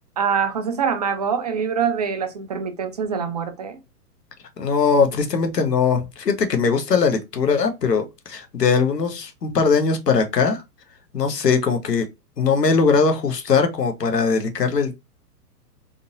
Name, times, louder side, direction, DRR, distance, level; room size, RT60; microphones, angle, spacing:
voice 1, 0.2-3.8, right 6 dB, 30° right, 0.3 m, -24 dB
voice 2, 4.6-10.6 11.1-12.1 12.4-15.0, left 5 dB, 85° left, 1.0 m, -20 dB
3.8 x 2.8 x 2.5 m
figure-of-eight pair, 120°, 48 cm